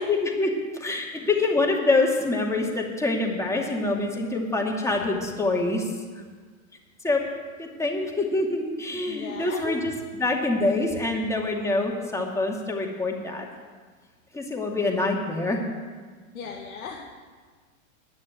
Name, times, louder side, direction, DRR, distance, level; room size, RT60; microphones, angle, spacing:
voice 1, 0.0-5.9 7.0-7.2 7.6-13.5 14.3-15.6, left 2 dB, 5° left, 0 dB, 2.3 m, -25 dB
voice 2, 9.1-9.8 16.3-17.0, left 6 dB, 85° left, -1 dB, 1.7 m, -37 dB
10.5 x 9.6 x 9.1 m, 1.5 s
hypercardioid pair, 110°, 42 cm